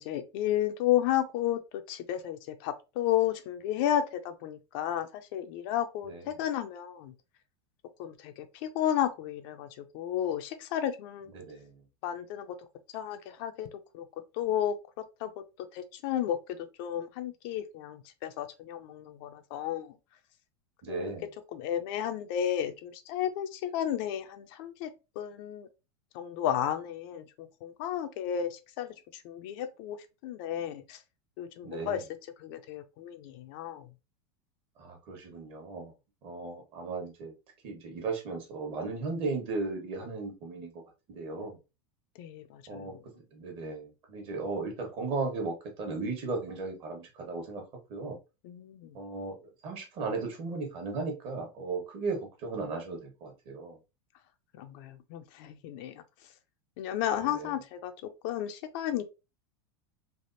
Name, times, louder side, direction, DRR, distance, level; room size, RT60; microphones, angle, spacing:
voice 1, 0.0-7.1 8.0-11.3 12.0-12.6 12.9-13.7 13.9-14.1 14.3-14.8 15.2-15.3 15.7-20.0 20.9-21.1 21.5-25.7 26.1-30.0 30.2-31.0 31.4-32.0 32.4-33.9 42.2-43.0 48.4-49.0 54.5-56.0 56.8-59.0, left 11 dB, 55° left, 0.5 m, -33 dB
voice 2, 11.3-11.7 20.8-21.2 31.6-32.0 34.8-35.9 36.2-37.3 37.6-40.7 41.1-41.6 42.7-42.9 43.3-47.6 47.9-48.2 48.9-49.3 49.6-53.8 57.2-57.5, right 3 dB, 45° right, 1.2 m, -36 dB
3.4 x 2.4 x 2.6 m
supercardioid pair, 140°, 14 cm